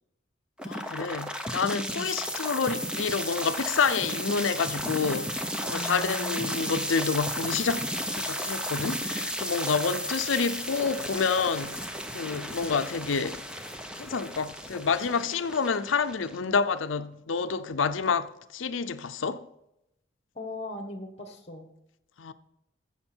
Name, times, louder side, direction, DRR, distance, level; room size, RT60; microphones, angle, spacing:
voice 1, 0.6-7.9 8.1-11.8 12.1-13.4 14.0-19.4 22.2-22.3, left 5 dB, 85° left, 0.6 m, -28 dB
sound 1, 0.6-16.6, equal, 5° right, 0.9 m, -34 dB
voice 2, 5.7-6.5 12.6-12.7 20.3-21.7, left 2 dB, 35° left, 1.5 m, -39 dB
14.0 x 7.3 x 4.5 m
head